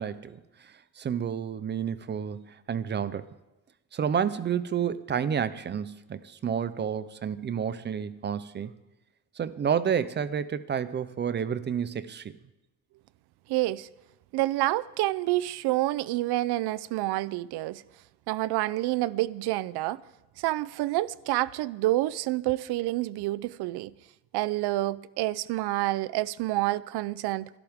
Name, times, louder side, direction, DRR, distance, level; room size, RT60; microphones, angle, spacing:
voice 1, 0.0-3.3 3.9-8.7 9.4-12.3, right 8 dB, 25° right, 0.5 m, -30 dB
voice 2, 13.5-13.9 14.3-17.8 18.3-20.0 20.4-23.9 24.3-27.5, right 17 dB, 70° right, 0.6 m, -28 dB
24.5 x 12.0 x 3.6 m
cardioid pair, 155°, 40 cm